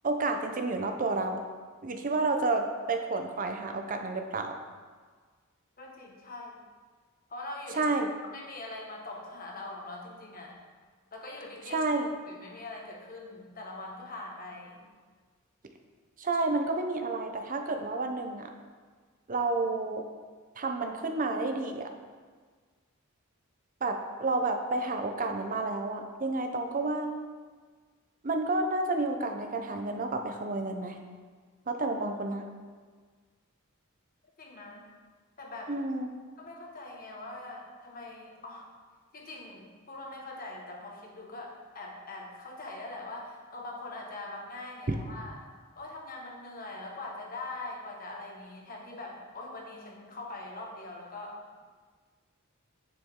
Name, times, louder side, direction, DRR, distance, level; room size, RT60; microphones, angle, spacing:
voice 1, 0.0-1.4 1.8-4.6 7.7-8.1 11.7-12.1 16.2-18.5 19.3-20.1 20.6-21.9 23.8-27.1 28.2-31.0 31.7-32.5 35.7-36.1 44.9-45.0, right 3 dB, 40° right, 5 dB, 0.7 m, -30 dB
voice 2, 5.8-6.6 7.3-7.9 8.3-10.6 11.1-11.8 12.3-14.8 34.4-34.9 35.4-35.7 36.4-38.7 39.1-45.4 45.7-51.6, left 2 dB, 45° left, -1 dB, 1.5 m, -42 dB
10.0 x 7.1 x 3.7 m, 1.5 s
head